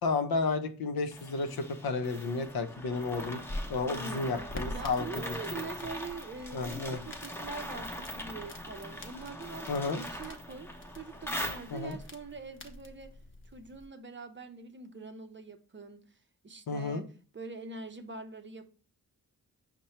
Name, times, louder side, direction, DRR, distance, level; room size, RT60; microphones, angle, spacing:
voice 1, 0.0-3.4 3.7-5.2 6.5-7.0 9.7-10.1 11.7-12.0 16.7-17.0, left 4 dB, 70° left, 0.7 m, -32 dB
sound 1, 1.1-12.1, equal, 5° left, 0.8 m, -41 dB
sound 2, 3.4-13.9, left 1 dB, 30° left, 0.9 m, -46 dB
voice 2, 3.9-13.1 13.5-16.1 16.4-17.1 17.3-18.7, right 4 dB, 30° right, 0.6 m, -44 dB
5.3 x 2.2 x 4.3 m
cardioid pair, 55°, 38 cm